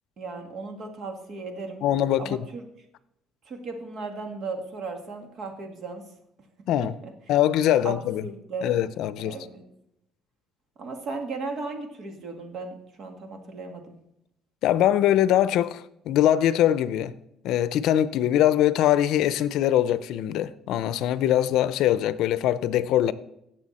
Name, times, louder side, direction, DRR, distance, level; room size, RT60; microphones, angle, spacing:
voice 1, 0.2-1.9 2.2-2.6 3.5-6.0 6.8-7.1 7.8-7.9 8.2-8.8 9.2-9.6 10.8-14.0, right 3 dB, 45° right, 1.9 m, -36 dB
voice 2, 1.8-2.3 6.7-6.9 7.3-8.3 8.6-9.4 14.6-17.1 17.4-23.1, left 12 dB, 70° left, 0.6 m, -22 dB
17.0 x 6.9 x 4.2 m
cardioid pair, 145°, 0 cm